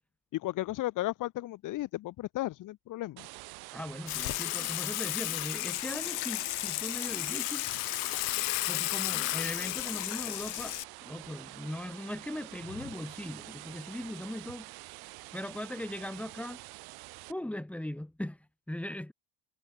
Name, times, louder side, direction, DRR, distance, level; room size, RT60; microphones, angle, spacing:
voice 1, 0.3-3.3, left 16 dB, 50° left, 1.7 m, -34 dB
sound 1, 3.2-17.3, right 24 dB, 70° right, 2.3 m, -47 dB
voice 2, 3.7-7.7 8.7-14.7 15.3-16.6 17.3-19.1, left 1 dB, 5° left, 4.0 m, -39 dB
Water / Water tap faucet / Sink (filling or washing), 4.1-10.8, left 34 dB, 75° left, 1.2 m, -33 dB
cardioid pair, 130°, 39 cm